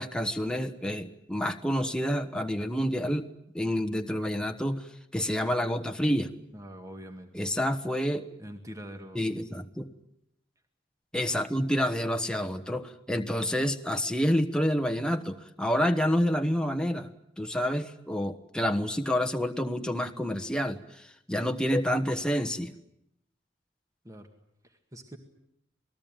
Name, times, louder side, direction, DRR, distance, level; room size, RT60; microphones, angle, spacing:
voice 1, 0.0-3.3 3.5-6.4 7.3-8.2 9.1-9.9 11.1-17.1 17.4-22.7, equal, 5° left, 6 dB, 1.2 m, -28 dB
voice 2, 6.5-7.3 8.4-9.2 24.0-24.3 24.6-25.2, equal, 20° right, 5 dB, 1.9 m, -44 dB
27.5 x 19.5 x 9.1 m, 0.79 s
head